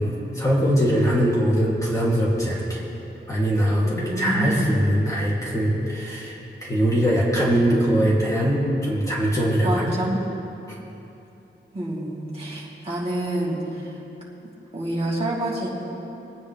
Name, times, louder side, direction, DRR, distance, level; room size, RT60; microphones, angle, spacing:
voice 1, 0.0-2.9 3.3-9.9, equal, 15° left, -7 dB, 2.9 m, -22 dB
voice 2, 3.8-4.8 9.6-10.2 11.7-14.0 14.7-15.7, right 1 dB, 30° right, -7 dB, 3.1 m, -27 dB
24.5 x 9.4 x 3.5 m, 2.9 s
wide cardioid pair, 115°, 20 cm